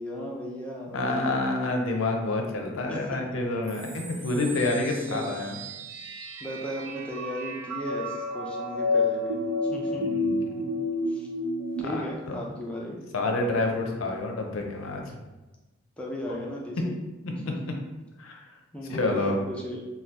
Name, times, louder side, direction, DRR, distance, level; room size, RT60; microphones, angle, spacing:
voice 1, 0.0-1.4 2.8-3.2 4.9-5.2 6.4-9.4 9.7-10.1 11.1-11.3 11.8-13.0 16.0-17.0 17.4-17.5 18.7-19.9, equal, 5° left, -3 dB, 0.4 m, -36 dB
voice 2, 0.9-5.6 9.9-10.3 11.8-12.4 13.1-15.2 16.8-16.9 17.2-17.7 18.2-18.4 18.9-19.4, left 2 dB, 80° left, 2 dB, 0.5 m, -28 dB
sound 1, 3.7-11.8, left 2 dB, 65° right, 0.4 m, -31 dB
2.8 x 2.2 x 3.3 m, 1.1 s
head